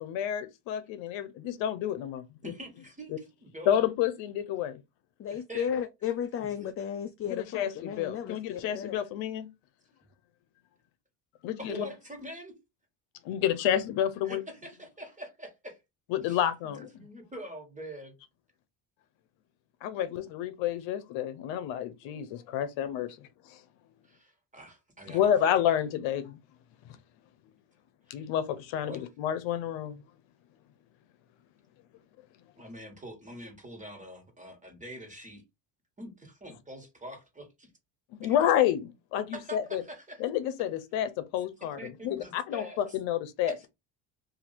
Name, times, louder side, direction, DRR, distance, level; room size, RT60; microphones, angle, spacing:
voice 1, 0.0-2.3 3.1-3.2 3.7-4.8 7.3-9.5 11.4-11.9 13.2-14.4 16.1-16.9 19.8-23.6 25.1-26.4 28.1-30.0 38.2-39.8 40.2-43.7, left 10 dB, 75° left, 0.7 m, -29 dB
voice 2, 2.4-3.7 5.3-5.7 6.4-6.5 11.6-12.5 14.2-15.8 16.2-16.4 17.0-18.1 24.0-25.3 28.9-29.1 32.6-35.4 36.0-37.7 38.2-38.3 39.3-40.2 41.8-42.8 43.5-43.6, right 1 dB, 15° right, 1.7 m, -44 dB
voice 3, 5.2-9.0, left 8 dB, 30° left, 0.4 m, -34 dB
2.7 x 2.7 x 4.1 m
supercardioid pair, 90°, 46 cm